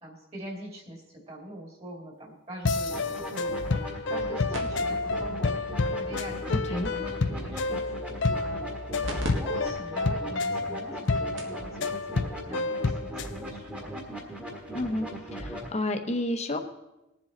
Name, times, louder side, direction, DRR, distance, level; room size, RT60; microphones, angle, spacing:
voice 1, 0.0-7.8 8.2-8.7 9.3-13.9, equal, 30° right, 0 dB, 2.6 m, -43 dB
sound 1, 2.6-13.3, left 3 dB, 60° left, 0.6 m, -30 dB
sound 2, 2.9-15.7, equal, 5° right, 1.6 m, -39 dB
sound 3, 4.5-9.3 9.7-9.8 10.4-10.5 11.1-11.2 11.4-11.6 12.9-13.0, equal, 65° right, 2.0 m, -39 dB
voice 2, 6.5-6.9 14.7-15.1 15.3-16.7, left 1 dB, 35° left, 5 dB, 1.1 m, -30 dB
21.0 x 7.3 x 4.0 m, 0.94 s
head